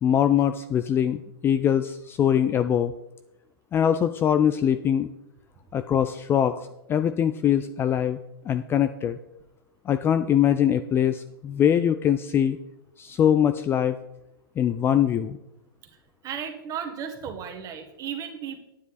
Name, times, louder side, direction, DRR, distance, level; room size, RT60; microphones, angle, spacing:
voice 1, 0.0-2.9 3.7-5.1 5.7-8.2 8.5-9.2 9.9-12.6 13.0-14.0 14.6-15.4, left 9 dB, 20° left, 11 dB, 0.4 m, -22 dB
voice 2, 16.2-18.6, right 8 dB, 25° right, 5 dB, 1.7 m, -34 dB
9.8 x 9.2 x 4.1 m, 0.89 s
hypercardioid pair, 115°, 13 cm